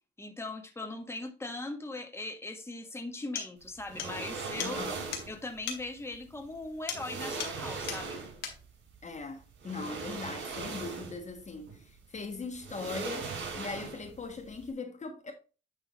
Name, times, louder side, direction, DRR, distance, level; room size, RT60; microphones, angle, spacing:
voice 1, 0.2-4.8 5.3-8.2, left 2 dB, 15° left, 1.5 m, -40 dB
sound 1, 2.8-2.9 3.4-3.5 4.0-4.2 4.6-4.7 5.1-5.3 5.7-5.8 6.9-7.1 7.4-7.6 7.9-8.0 8.4-8.6, left 7 dB, 80° left, 2.2 m, -37 dB
sound 2, 3.9-5.4 6.4-6.5 6.9-8.5 9.6-11.3 11.7-11.8 12.6-14.2 14.5-14.6, right 4 dB, 65° right, 2.9 m, -39 dB
voice 2, 4.6-5.0 9.0-15.3, left 4 dB, 35° left, 1.3 m, -40 dB
10.5 x 3.7 x 4.1 m
cardioid pair, 90°, 20 cm